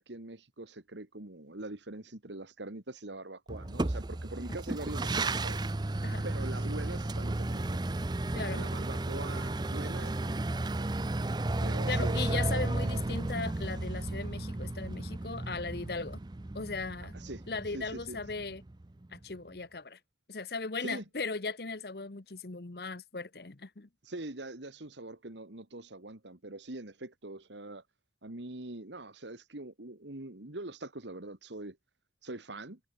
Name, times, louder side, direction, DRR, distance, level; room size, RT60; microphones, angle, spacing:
voice 1, 0.0-5.6 6.2-8.2 8.5-10.9 11.6-12.6 12.9-13.0 17.1-17.5 17.7-18.2 20.8-21.0 24.0-27.8 28.2-31.8 32.2-32.8, right 2 dB, 80° right, 2.1 m, -43 dB
sound 1, 3.5-19.2, right 2 dB, 25° right, 0.5 m, -33 dB
voice 2, 8.3-8.7 11.9-16.2 16.5-17.1 17.5-18.6 19.1-20.0 20.3-23.9, left 4 dB, 60° left, 1.0 m, -37 dB
head